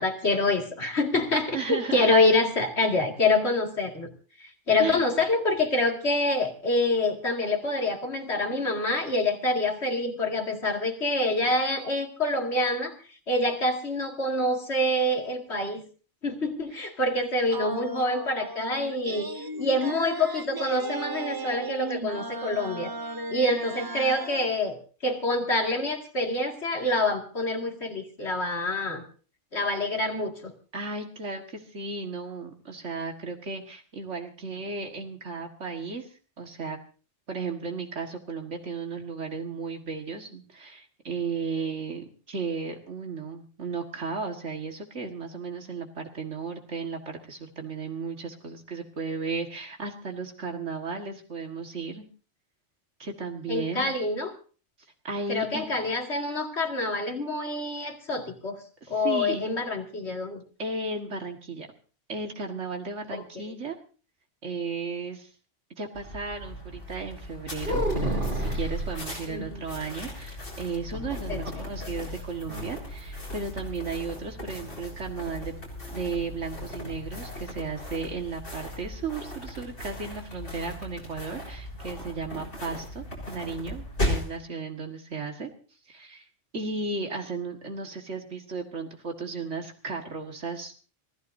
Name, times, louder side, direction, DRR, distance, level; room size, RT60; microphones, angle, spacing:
voice 1, 0.0-4.1 4.4-12.9 13.3-15.8 16.2-19.3 19.6-22.9 23.3-29.0 29.5-30.5 53.5-54.3 55.3-58.6 58.9-60.4 69.3-69.6 71.3-71.4 71.8-71.9, left 2 dB, 65° left, 2 dB, 2.6 m, -26 dB
voice 2, 1.5-2.1 4.8-5.1 30.7-36.1 36.4-36.8 37.3-52.1 53.0-53.9 55.0-55.7 58.8-59.4 60.6-61.7 62.1-63.8 64.4-65.3 65.8-75.5 75.9-85.5 85.9-86.3 86.5-90.7, right 4 dB, 80° right, 3 dB, 2.1 m, -35 dB
sound 1, 17.5-24.5, right 2 dB, 25° right, 0.5 m, -35 dB
sound 2, 65.9-84.4, left 1 dB, 90° left, 6.9 m, -37 dB
sound 3, 67.6-69.0 70.7-71.7 72.0-72.1 72.5-72.7, right 1 dB, 55° right, 3.9 m, -29 dB
25.5 x 15.5 x 2.7 m, 0.38 s
omnidirectional pair, 1.2 m